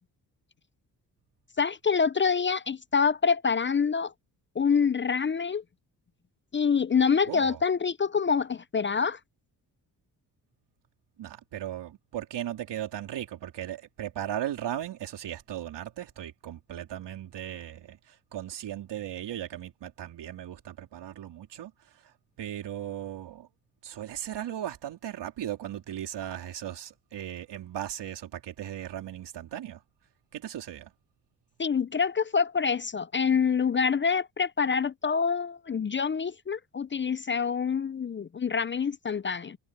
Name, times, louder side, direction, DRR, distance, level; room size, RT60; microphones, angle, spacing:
voice 1, 1.6-4.1 4.6-5.6 6.5-9.2 31.6-39.6, left 6 dB, 30° left, 0.5 m, -26 dB
voice 2, 7.3-7.6 11.2-21.7 22.4-23.5 23.8-29.8 30.3-30.9, right 11 dB, 80° right, 4.0 m, -37 dB
cardioid pair, 65°, 41 cm